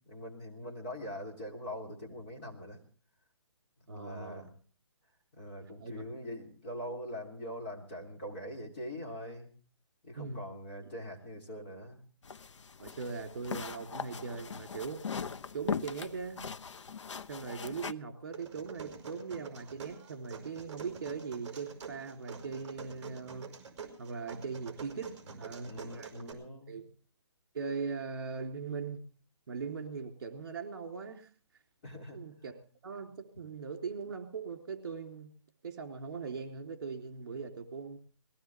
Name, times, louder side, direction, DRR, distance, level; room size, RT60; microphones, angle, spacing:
voice 1, 0.0-2.8 3.8-4.5 5.4-9.5 10.0-12.0 25.3-26.9 31.8-32.6, equal, 25° left, -2 dB, 3.3 m, -43 dB
voice 2, 3.9-4.5 5.8-6.1 10.1-10.4 12.8-15.0 15.5-16.5 17.3-23.5 24.0-25.1 25.4-26.4 26.7-26.8 27.5-29.0 29.5-31.3 32.1-32.5 32.8-35.3 35.6-38.0, right 5 dB, 45° right, 4 dB, 3.5 m, -40 dB
sound 1, 12.2-17.9, left 6 dB, 70° left, 0.8 m, -40 dB
sound 2, 18.3-26.3, right 6 dB, 20° right, 5.2 m, -47 dB
21.0 x 17.0 x 3.5 m, 0.41 s
hypercardioid pair, 170°, 16 cm